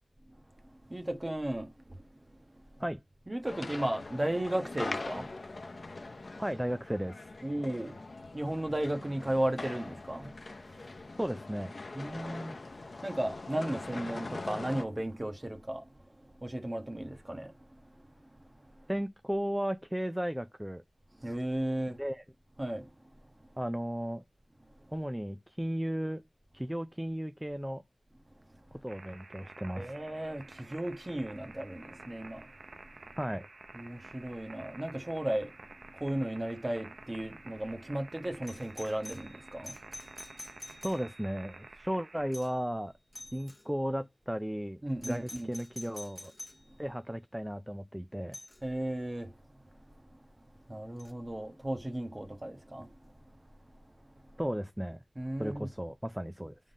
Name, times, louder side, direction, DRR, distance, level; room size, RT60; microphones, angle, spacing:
voice 1, 0.6-2.0 2.3-2.4 3.3-5.3 7.4-10.3 11.9-15.9 16.3-17.5 17.9-18.0 21.2-22.0 22.6-22.9 29.7-32.5 33.7-39.8 44.8-45.5 48.6-49.3 50.7-53.1 55.2-55.7, right 1 dB, 30° right, 1.3 m, -35 dB
sound 1, 3.5-14.8, left 3 dB, 70° left, 0.7 m, -42 dB
voice 2, 6.4-7.3 11.2-11.7 18.9-20.8 22.0-22.2 23.6-24.2 24.9-26.2 26.5-27.8 28.8-29.9 33.2-33.5 40.8-42.9 43.3-46.3 46.8-48.4 54.4-55.0 55.4-56.6, equal, 10° right, 0.4 m, -35 dB
sound 2, 28.9-42.4, right 3 dB, 85° right, 0.8 m, -51 dB
Doorbell, 38.4-41.4 42.3-42.7 43.1-43.6 45.0-46.7 48.3-48.6 51.0-51.1, left 1 dB, 25° left, 1.2 m, -48 dB
7.3 x 3.7 x 4.0 m
wide cardioid pair, 70°, 0 cm